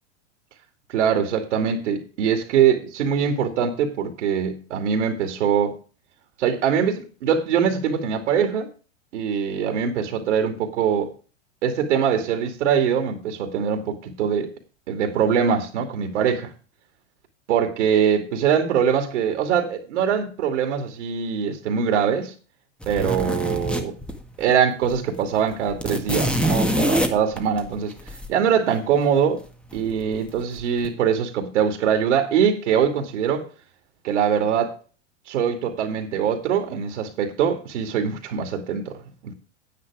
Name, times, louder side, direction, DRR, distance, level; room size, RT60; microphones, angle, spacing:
voice 1, 0.9-5.7 6.4-8.7 9.1-11.1 11.6-14.5 14.9-16.5 17.5-22.3 22.9-23.9 24.4-27.9 28.3-29.4 29.7-33.4 34.0-34.8 35.3-39.0 39.2-39.3, right 7 dB, 75° right, 2.4 m, -22 dB
sound 1, 22.8-24.5 24.8-24.9 25.2-28.3 29.7-30.2 30.6-30.9, equal, 5° left, 1.7 m, -25 dB
9.7 x 9.6 x 4.8 m
hypercardioid pair, 110°, 36 cm